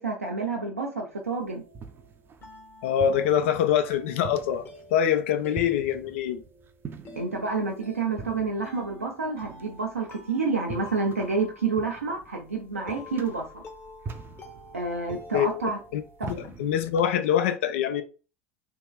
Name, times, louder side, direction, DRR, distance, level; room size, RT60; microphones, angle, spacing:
voice 1, 0.0-1.6 7.2-13.6 14.7-15.8 16.2-16.3, right 4 dB, 85° right, 0.5 m, -29 dB
sound 1, 1.2-17.1, right 4 dB, 30° right, 0.5 m, -44 dB
sound 2, 1.6-16.3, left 2 dB, 30° left, 1.1 m, -49 dB
voice 2, 2.8-6.4 15.3-15.6 15.9-18.0, left 9 dB, 65° left, 0.5 m, -25 dB
3.6 x 3.0 x 2.2 m
figure-of-eight pair, 75°, 7 cm